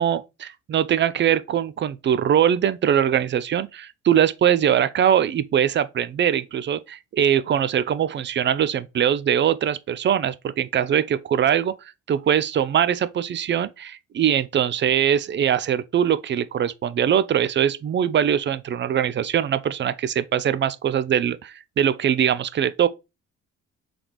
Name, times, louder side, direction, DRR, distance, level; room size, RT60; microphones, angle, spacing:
voice 1, 0.0-11.7 12.1-22.9, right 9 dB, 40° right, 0.4 m, -22 dB
4.0 x 3.4 x 3.0 m
cardioid pair, 90°, 30 cm